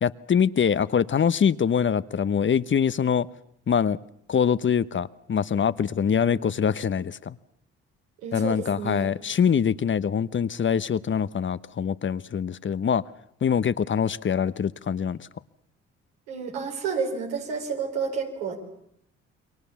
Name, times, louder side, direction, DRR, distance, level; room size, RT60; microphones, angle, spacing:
voice 1, 0.0-3.3 3.7-4.0 4.3-7.4 8.3-13.0 13.4-15.3, left 7 dB, 40° left, 16 dB, 1.0 m, -24 dB
voice 2, 5.9-6.4 8.2-9.1 16.3-18.6, right 5 dB, 90° right, 2 dB, 4.5 m, -31 dB
28.5 x 23.0 x 7.2 m, 0.72 s
hypercardioid pair, 55°, 29 cm